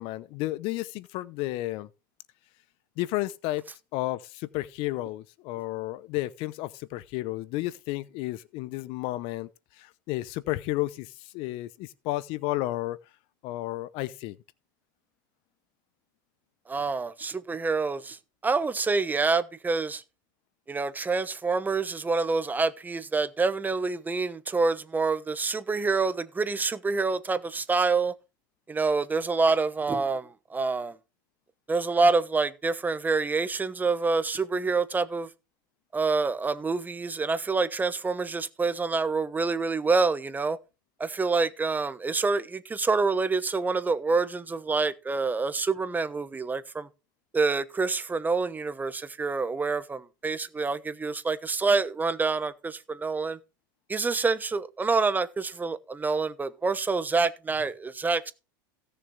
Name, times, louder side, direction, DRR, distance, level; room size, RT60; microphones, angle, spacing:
voice 1, 0.0-1.9 3.0-3.7 3.9-9.5 9.8-13.0 13.4-14.4, left 17 dB, 55° left, 0.7 m, -32 dB
voice 2, 16.7-20.0 20.7-28.1 28.7-31.0 31.7-35.3 35.9-40.6 41.0-46.9 47.3-53.4 53.9-58.3, right 4 dB, 15° right, 1.1 m, -27 dB
16.5 x 6.7 x 3.3 m
hypercardioid pair, 100°, 11 cm